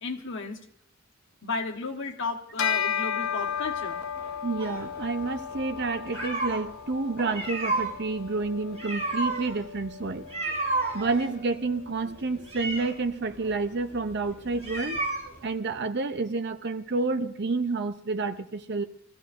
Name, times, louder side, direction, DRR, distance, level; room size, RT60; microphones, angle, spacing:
voice 1, 0.0-0.6 1.4-4.0, left 3 dB, 65° left, 2 dB, 1.3 m, -34 dB
Bell, 2.6-12.3, left 7 dB, 85° left, 0.9 m, -35 dB
sound 1, 3.2-15.5, equal, 45° left, 6.7 m, -50 dB
voice 2, 4.4-10.2 10.9-15.0 15.4-18.8, right 3 dB, 55° right, 9 dB, 0.8 m, -29 dB
sound 2, 4.6-6.7 7.2-15.6, right 3 dB, 30° right, 3.7 m, -32 dB
24.5 x 15.0 x 2.6 m, 0.69 s
head